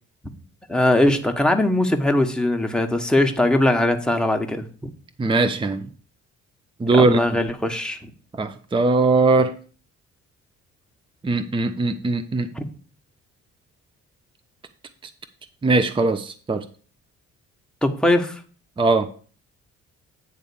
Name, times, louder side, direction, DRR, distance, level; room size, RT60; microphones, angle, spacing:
voice 1, 0.7-4.9 6.9-8.1 12.5-12.7 17.8-18.4, left 1 dB, 5° left, 4 dB, 1.2 m, -20 dB
voice 2, 5.2-5.9 6.8-7.2 8.4-9.5 11.2-12.5 15.6-16.7 18.8-19.1, right 3 dB, 15° right, 10 dB, 0.6 m, -20 dB
9.5 x 3.5 x 7.0 m, 0.41 s
cardioid pair, 90°, 30 cm